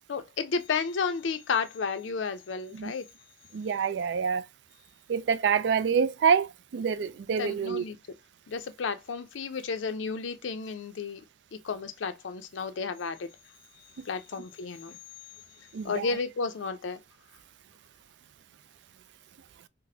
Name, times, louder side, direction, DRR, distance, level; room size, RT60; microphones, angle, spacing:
voice 1, 0.1-3.1 7.4-8.0 8.5-11.2 11.6-13.3 14.1-15.0 15.8-17.0, left 5 dB, 85° left, 0.5 m, -32 dB
voice 2, 3.5-4.4 5.1-6.5 6.7-7.8 15.7-16.1, right 6 dB, 65° right, 0.3 m, -26 dB
4.0 x 2.0 x 2.6 m
head